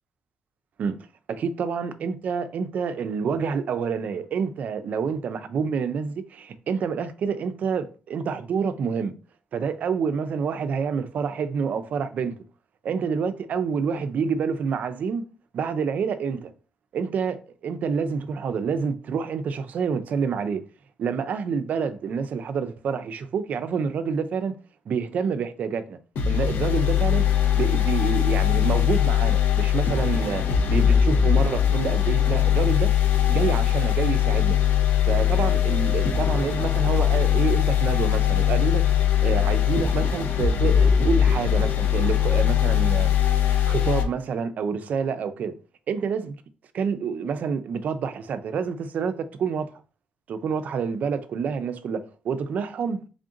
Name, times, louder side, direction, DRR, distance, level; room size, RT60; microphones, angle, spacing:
voice 1, 1.3-9.1 9.5-12.4 12.8-15.3 15.5-16.5 16.9-20.6 21.0-24.6 24.9-26.0 26.3-27.3 27.5-32.9 33.3-34.6 35.0-38.9 39.2-43.2 43.7-45.5 45.9-46.4 46.7-49.7 50.3-53.0, right 6 dB, 55° right, 0.4 m, -28 dB
sound 1, 26.2-44.0, left 9 dB, 75° left, 0.7 m, -21 dB
3.5 x 2.5 x 3.7 m
cardioid pair, 150°, 3 cm